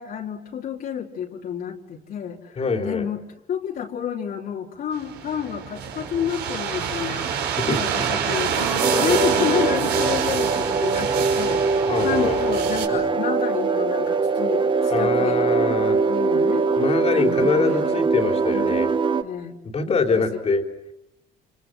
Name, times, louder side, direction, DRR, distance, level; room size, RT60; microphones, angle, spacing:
voice 1, 0.0-3.2 3.5-7.3 7.8-15.4 16.0-16.7 17.1-18.0 18.5-18.9 19.2-19.6 19.8-20.4, left 8 dB, 60° left, -1 dB, 3.3 m, -30 dB
voice 2, 2.6-3.1 7.7-8.1 8.9-9.2 11.9-12.4 12.9-13.1 14.9-16.0 16.8-18.9 19.6-20.6, left 4 dB, 40° left, 4 dB, 3.5 m, -24 dB
sound 1, 5.0-12.9, right 7 dB, 80° right, 5.3 m, -27 dB
sound 2, 8.8-19.2, right 4 dB, 30° right, 1.3 m, -22 dB
28.5 x 27.0 x 7.6 m, 0.91 s
cardioid pair, 110°, 17 cm